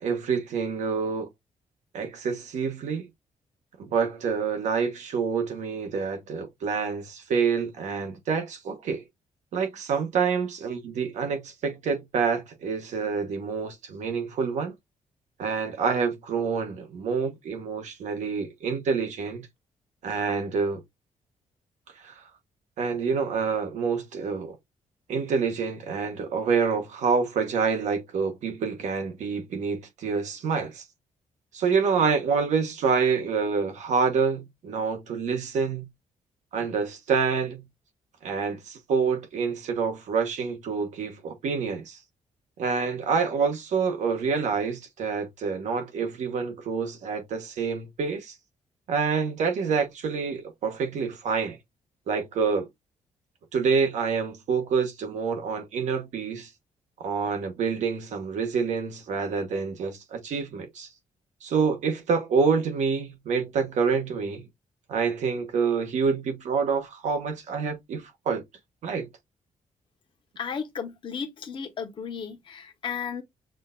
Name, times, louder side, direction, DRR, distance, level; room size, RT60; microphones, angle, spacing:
voice 1, 0.0-1.3 1.9-3.1 3.8-9.0 9.5-14.7 15.4-19.5 20.0-20.8 22.0-22.2 22.8-24.6 25.1-30.8 31.5-35.9 36.5-37.6 38.2-42.0 42.6-48.4 48.9-51.6 52.1-52.7 53.5-56.5 57.0-60.9 61.4-64.4 64.9-68.4 68.8-69.1, right 5 dB, 70° right, 1.2 m, -27 dB
voice 2, 70.4-73.2, left 6 dB, 40° left, 1.0 m, -34 dB
6.2 x 2.5 x 2.3 m
wide cardioid pair, 180°, 13 cm